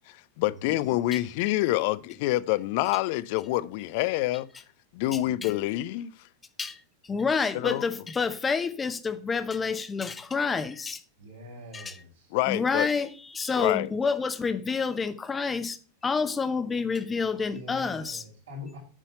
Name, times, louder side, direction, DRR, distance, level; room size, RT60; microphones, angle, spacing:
voice 1, 0.1-4.5 4.9-6.1 7.5-7.8 12.3-12.9 13.6-13.9, left 17 dB, 50° left, 0.4 m, -27 dB
voice 2, 5.1-5.5 6.6-11.0 11.7-12.0 12.5-15.8 16.0-18.2, left 5 dB, 15° left, 0.8 m, -29 dB
voice 3, 11.2-12.4 17.4-18.8, left 1 dB, 70° right, 3.8 m, -44 dB
7.2 x 5.7 x 5.5 m
figure-of-eight pair, 90°, 0 cm